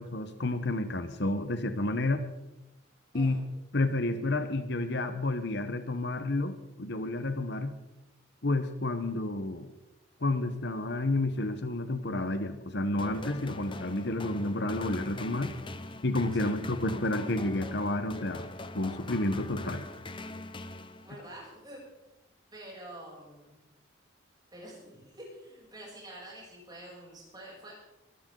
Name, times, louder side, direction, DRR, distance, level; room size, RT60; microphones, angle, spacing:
voice 1, 0.0-2.2 3.1-3.4 3.7-7.7 8.4-9.7 10.2-15.5 16.0-18.5 18.7-19.8, left 2 dB, 55° left, 9 dB, 1.1 m, -30 dB
sound 1, 13.0-21.4, left 2 dB, 25° left, 0.8 m, -41 dB
voice 2, 21.0-21.8 22.5-23.6 24.5-27.7, right 1 dB, 20° right, -4 dB, 7.8 m, -47 dB
23.0 x 14.0 x 3.9 m, 0.96 s
head